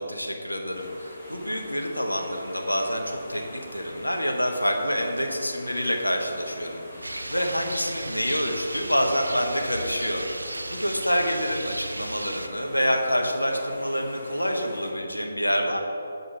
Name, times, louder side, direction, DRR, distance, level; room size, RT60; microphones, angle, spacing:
voice 1, 0.0-10.4 10.7-15.8, equal, 85° left, 2 dB, 0.7 m, -27 dB
sound 1, 0.7-14.9, equal, 10° left, 1.4 m, -44 dB
Rain, 7.0-12.5, right 1 dB, 75° right, 0.3 m, -35 dB
7.6 x 2.6 x 5.2 m, 2.8 s
figure-of-eight pair, 145°, 0 cm